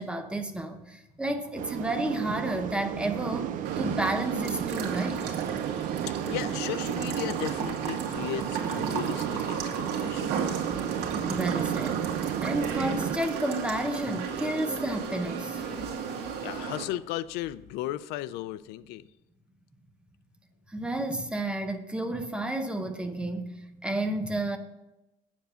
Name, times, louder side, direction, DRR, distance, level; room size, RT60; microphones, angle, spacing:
voice 1, 0.0-5.2 11.1-15.6 20.7-23.5 23.8-24.6, right 1 dB, 5° right, 6 dB, 0.8 m, -31 dB
sound 1, 1.6-13.1, right 10 dB, 50° right, 0.6 m, -33 dB
sound 2, 3.6-16.8, right 6 dB, 75° right, 2.0 m, -35 dB
voice 2, 6.1-10.7 16.4-19.0, left 14 dB, 80° left, 16 dB, 0.5 m, -36 dB
Engine, 10.0-17.9 18.5-18.6, left 3 dB, 40° left, 3.2 m, -52 dB
9.1 x 7.3 x 6.8 m, 0.96 s
cardioid pair, 160°, 17 cm